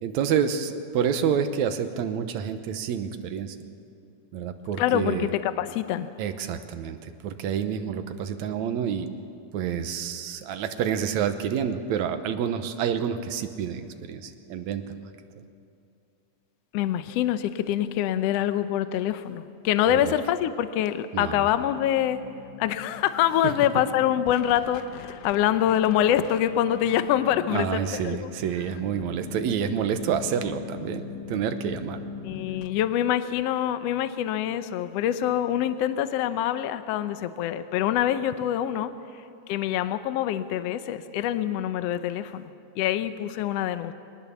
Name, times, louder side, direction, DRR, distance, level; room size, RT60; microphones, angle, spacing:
voice 1, 0.0-3.6 4.3-5.3 6.2-9.1 9.5-15.0 19.9-20.1 21.1-21.5 23.4-23.5 27.5-32.0, right 8 dB, 75° right, 8 dB, 2.3 m, -28 dB
voice 2, 4.8-6.1 16.7-22.2 22.6-28.3 32.2-38.9 39.5-42.5 42.8-43.9, left 11 dB, 70° left, 11 dB, 1.6 m, -25 dB
sound 1, 21.5-32.7, left 8 dB, 90° left, 2.5 m, -42 dB
22.0 x 19.5 x 7.2 m, 2.5 s
omnidirectional pair, 3.4 m